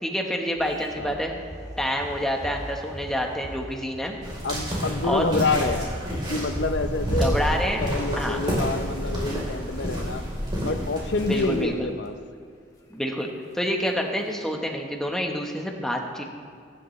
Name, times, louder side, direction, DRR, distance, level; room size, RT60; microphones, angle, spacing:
voice 1, 0.0-1.3 1.8-4.2 5.1-5.2 7.2-7.8 8.2-8.4 11.3-11.9 12.9-13.3 13.5-16.2, equal, 5° left, 1 dB, 1.2 m, -27 dB
sound 1, 0.6-5.6 6.0-6.5 6.8-7.1 7.6-7.7 8.0-8.1 9.3-9.9 10.6-10.7 10.9-11.0 12.0-12.1 12.3-12.4 12.8-12.9 13.9-14.0 14.2-14.5, equal, 20° left, 1.3 m, -42 dB
sound 2, 4.2-11.6, equal, 25° right, 3.8 m, -29 dB
voice 2, 4.4-5.9 6.3-7.4 7.8-10.2 10.6-12.1, left 3 dB, 65° left, 8 dB, 0.8 m, -27 dB
23.0 x 10.5 x 3.2 m, 2.2 s
head